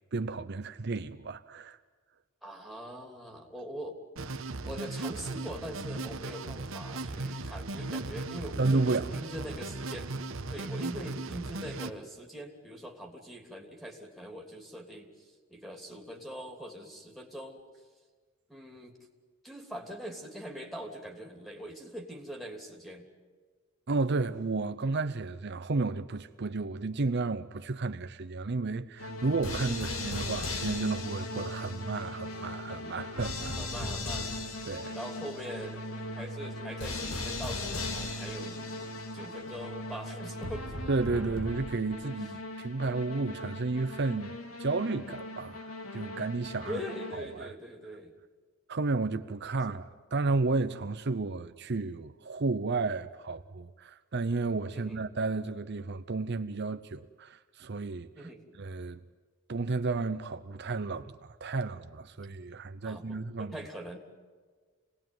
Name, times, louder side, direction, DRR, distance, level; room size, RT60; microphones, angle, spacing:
voice 1, 0.1-1.8 4.4-4.5 8.6-9.1 23.9-33.5 34.6-35.0 40.9-44.3 44.6-46.8 47.1-47.5 48.7-58.3 58.6-59.0 59.5-63.5, right 3 dB, 55° right, 0.7 m, -32 dB
voice 2, 2.4-4.0 4.4-8.8 9.1-10.1 10.5-15.1 15.5-17.6 18.5-18.9 19.4-23.0 33.6-34.3 34.9-38.6 39.1-40.7 42.1-42.2 46.7-48.1 49.7-49.8 54.7-55.0 58.1-58.4 62.8-64.0, equal, ahead, 3.1 m, -42 dB
sound 1, 4.2-11.9, right 2 dB, 70° right, 1.2 m, -37 dB
sound 2, 29.0-47.5, left 2 dB, 85° left, 2.3 m, -38 dB
27.0 x 19.0 x 9.3 m
head